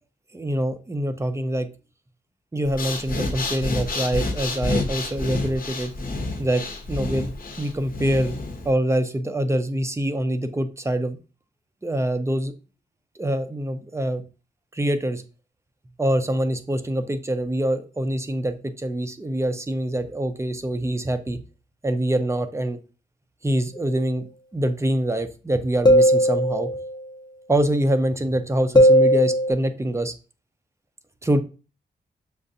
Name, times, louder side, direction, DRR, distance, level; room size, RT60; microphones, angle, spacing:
voice 1, 0.3-1.7 2.5-5.9 6.4-7.3 7.6-8.4 8.6-11.2 11.8-12.5 13.2-14.2 14.7-15.2 16.0-21.4 21.8-22.8 23.4-26.7 27.5-30.1 31.2-31.4, right 1 dB, 15° right, 9 dB, 0.5 m, -25 dB
Breathing, 2.6-8.7, left 2 dB, 55° left, 1.0 m, -29 dB
sound 1, 25.9-26.9 28.8-29.5, equal, 25° left, 0.8 m, -16 dB
6.4 x 2.5 x 2.6 m, 0.34 s
cardioid pair, 80°, 18 cm